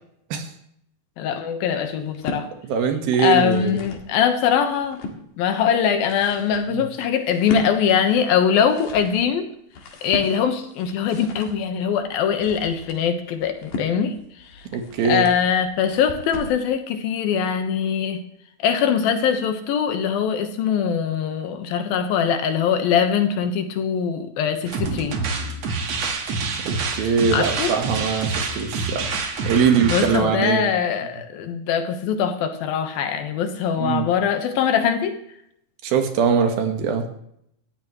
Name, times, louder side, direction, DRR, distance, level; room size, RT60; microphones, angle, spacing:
voice 1, 1.2-2.5 3.2-5.0 5.4-9.5 10.0-14.1 14.5-14.6 15.1-18.2 18.6-25.2 27.3-27.7 29.9-35.2, left 7 dB, 80° left, 7 dB, 3.0 m, -22 dB
sound 1, 2.0-2.5 3.2-4.1 4.6-5.2 5.8-16.6, left 3 dB, 65° left, 3.3 m, -37 dB
voice 2, 2.6-3.8 6.7-6.8 14.7-15.3 26.6-29.0 29.4-30.7 33.8-34.1 35.8-37.0, right 6 dB, 80° right, 5 dB, 3.3 m, -22 dB
sound 2, 24.7-30.2, right 4 dB, 50° right, 2.4 m, -27 dB
17.5 x 14.0 x 3.2 m, 0.73 s
omnidirectional pair, 4.2 m